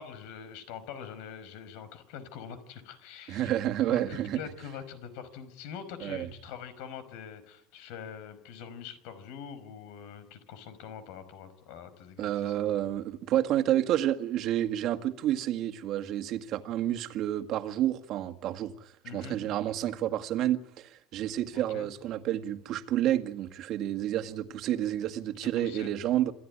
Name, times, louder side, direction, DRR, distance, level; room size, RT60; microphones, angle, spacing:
voice 1, 0.0-3.6 3.9-12.6 19.0-19.4 21.5-21.9 25.4-25.9, left 7 dB, 70° left, 5.4 m, -44 dB
voice 2, 3.3-4.4 6.0-6.3 12.2-26.3, right 12 dB, 50° right, 1.9 m, -30 dB
27.5 x 15.0 x 9.9 m
cardioid pair, 150°, 0 cm